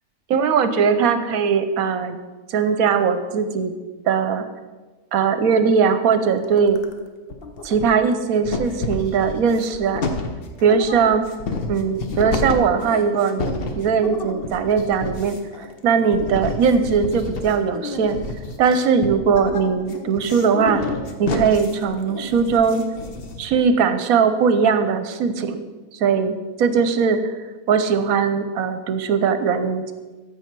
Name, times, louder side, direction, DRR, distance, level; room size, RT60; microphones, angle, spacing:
voice 1, 0.3-2.2 2.5-3.7 4.1-4.5 5.1-6.8 7.6-10.1 10.6-11.2 11.7-18.2 18.6-20.8 21.2-22.8 23.4-25.6 26.0-27.3 27.7-29.9, right 6 dB, 70° right, 10 dB, 1.1 m, -20 dB
sound 1, 6.4-7.0 7.3-8.1 8.4-23.6, left 3 dB, 45° left, 1.0 m, -30 dB
14.0 x 5.4 x 4.6 m, 1.3 s
omnidirectional pair, 1.6 m